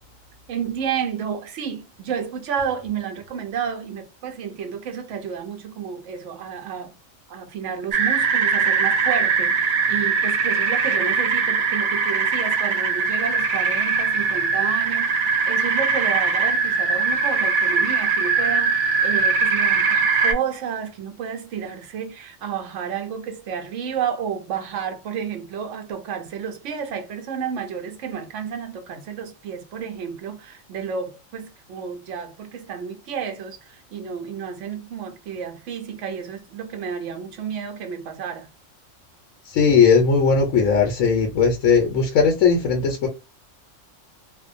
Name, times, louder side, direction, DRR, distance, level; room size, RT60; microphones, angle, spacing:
voice 1, 0.5-7.0 7.3-38.5, right 7 dB, 70° right, 0.9 m, -31 dB
sound 1, 7.9-20.3, right 5 dB, 50° right, 0.6 m, -21 dB
voice 2, 39.4-43.1, left 5 dB, 85° left, 1.0 m, -18 dB
2.5 x 2.1 x 2.4 m
omnidirectional pair, 1.4 m